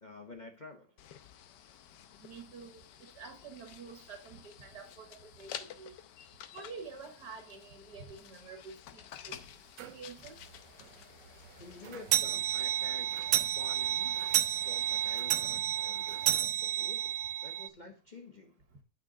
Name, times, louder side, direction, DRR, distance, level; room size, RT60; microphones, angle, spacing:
voice 1, 0.0-0.9 11.6-13.1 13.4-14.2 14.6-17.1 17.4-18.6, left 3 dB, 40° left, 0.7 m, -49 dB
sound 1, 1.0-15.2, left 10 dB, 85° left, 1.3 m, -52 dB
voice 2, 2.2-5.9 6.5-9.4 9.8-10.4, right 5 dB, 70° right, 1.9 m, -48 dB
sound 2, 9.8-9.9 10.4-10.5 10.8-10.9 11.3-17.7, right 12 dB, 90° right, 1.2 m, -31 dB
8.9 x 5.8 x 3.8 m
omnidirectional pair, 1.8 m